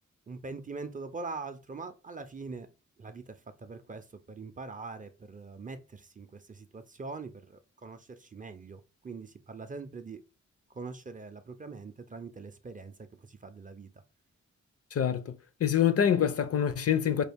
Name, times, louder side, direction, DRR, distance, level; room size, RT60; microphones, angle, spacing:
voice 1, 0.3-2.7 3.0-10.2 10.7-13.9, right 4 dB, 30° right, 0.4 m, -43 dB
voice 2, 14.9-15.3 15.6-17.2, left 9 dB, 50° left, 0.5 m, -25 dB
4.7 x 2.3 x 3.4 m
wide cardioid pair, 150°, 30 cm